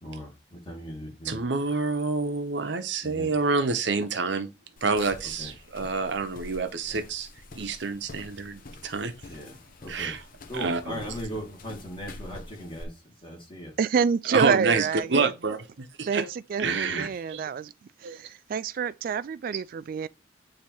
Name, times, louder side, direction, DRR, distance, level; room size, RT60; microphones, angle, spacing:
voice 1, 0.0-1.4 3.1-3.3 5.4-5.5 9.3-10.1 10.5-12.9 13.2-13.7 16.6-17.1, equal, 30° left, 1.9 m, -38 dB
voice 2, 1.2-4.5 4.8-7.3 7.5-9.1 9.9-10.2 10.5-11.0 14.3-16.3 16.6-17.5 18.0-18.2, right 4 dB, 70° right, 0.8 m, -28 dB
sound 1, 4.8-12.8, left 2 dB, 50° left, 0.7 m, -46 dB
voice 3, 13.8-15.3 16.0-17.7 18.0-20.1, right 6 dB, 50° right, 0.3 m, -27 dB
8.4 x 2.9 x 4.4 m
head